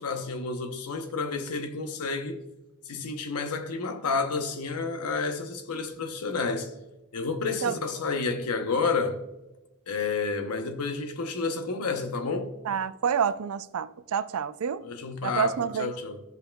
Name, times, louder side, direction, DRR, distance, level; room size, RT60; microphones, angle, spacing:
voice 1, 0.0-2.4 2.9-6.7 7.1-9.2 9.9-12.6 14.8-16.2, left 4 dB, 80° left, 0.8 m, -30 dB
voice 2, 12.7-14.8 15.2-15.9, right 7 dB, 70° right, 0.4 m, -28 dB
14.5 x 5.3 x 2.3 m
head